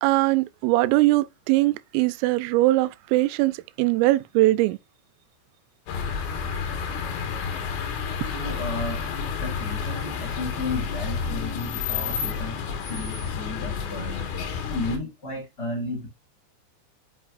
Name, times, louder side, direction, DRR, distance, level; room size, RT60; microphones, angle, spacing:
voice 1, 0.0-4.8, right 18 dB, 90° right, 3.2 m, -21 dB
sound 1, 5.9-15.0, left 6 dB, 70° left, 3.7 m, -30 dB
voice 2, 8.3-9.1 9.4-14.2 14.7-16.1, left 2 dB, 30° left, 2.3 m, -33 dB
9.3 x 5.4 x 2.5 m
omnidirectional pair, 5.7 m